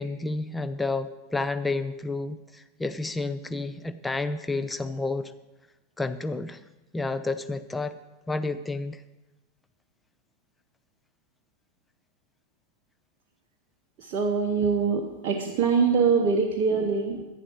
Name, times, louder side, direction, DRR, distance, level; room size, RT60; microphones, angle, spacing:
voice 1, 0.0-5.3 6.0-6.6 6.9-8.0 8.3-9.0, left 3 dB, 10° left, 11 dB, 0.5 m, -30 dB
voice 2, 14.0-17.2, right 5 dB, 40° right, 1 dB, 0.9 m, -24 dB
11.0 x 9.1 x 4.5 m, 1.0 s
figure-of-eight pair, 90°, 0 cm